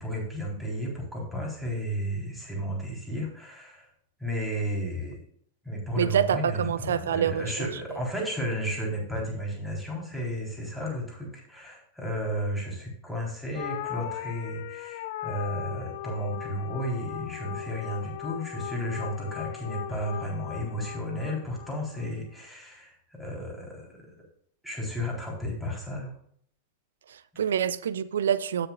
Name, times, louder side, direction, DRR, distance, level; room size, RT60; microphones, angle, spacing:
voice 1, 0.0-3.9 4.2-5.2 5.6-24.0 24.6-26.1, equal, ahead, 3.9 m, -33 dB
voice 2, 6.0-8.0 27.1-28.7, right 9 dB, 65° right, 0.5 m, -27 dB
sound 1, 13.5-22.1, left 12 dB, 55° left, 0.7 m, -38 dB
16.5 x 6.9 x 2.4 m
figure-of-eight pair, 90°, 0 cm